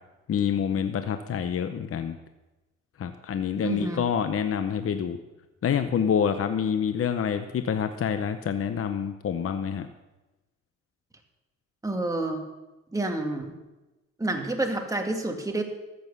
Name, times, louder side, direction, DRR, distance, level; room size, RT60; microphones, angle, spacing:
voice 1, 0.3-2.2 3.0-5.2 5.6-9.9, left 7 dB, 50° left, 9 dB, 0.8 m, -27 dB
voice 2, 3.6-4.0 11.8-12.4 12.9-13.5 14.2-15.6, right 2 dB, 10° right, 2 dB, 2.1 m, -28 dB
14.0 x 8.0 x 6.8 m, 1.1 s
cardioid pair, 90°, 30 cm